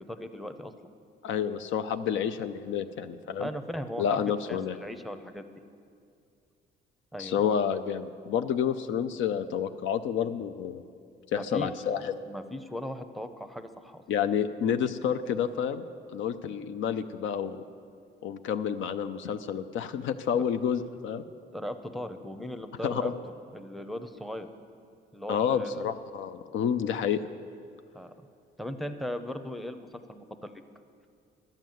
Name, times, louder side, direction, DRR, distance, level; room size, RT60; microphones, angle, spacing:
voice 1, 0.1-0.7 3.4-5.4 7.1-7.5 11.3-11.7 12.3-14.0 21.5-23.1 23.5-24.5 25.1-25.8 27.9-28.1 28.6-30.5, equal, ahead, 8 dB, 0.6 m, -38 dB
voice 2, 1.2-3.5 4.0-4.8 7.2-10.8 11.3-12.2 14.1-15.8 16.1-17.6 18.2-21.2 22.8-23.1 25.3-27.2, left 8 dB, 75° left, 9 dB, 0.5 m, -29 dB
12.0 x 7.4 x 7.8 m, 2.4 s
cardioid pair, 90°, 20 cm